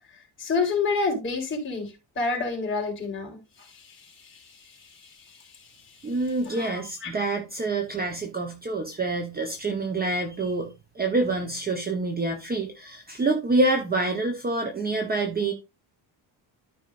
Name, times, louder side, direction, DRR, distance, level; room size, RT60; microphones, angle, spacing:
voice 1, 0.4-5.4 6.4-7.1, left 4 dB, 25° left, 3.8 m, -30 dB
voice 2, 6.0-10.7 10.9-15.5, right 2 dB, 20° right, 1.0 m, -27 dB
13.0 x 5.4 x 2.6 m
cardioid pair, 165°, 45 cm